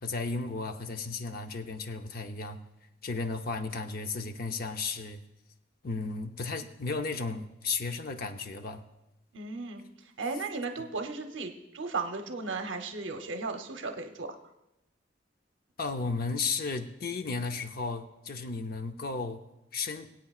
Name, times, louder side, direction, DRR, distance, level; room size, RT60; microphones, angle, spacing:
voice 1, 0.0-2.6 3.0-5.2 5.8-8.8 15.8-19.4 19.7-20.1, left 4 dB, 55° left, 7 dB, 0.6 m, -34 dB
voice 2, 9.3-9.8 10.2-14.3, right 3 dB, 80° right, 6 dB, 0.8 m, -35 dB
22.5 x 8.7 x 2.4 m, 0.91 s
head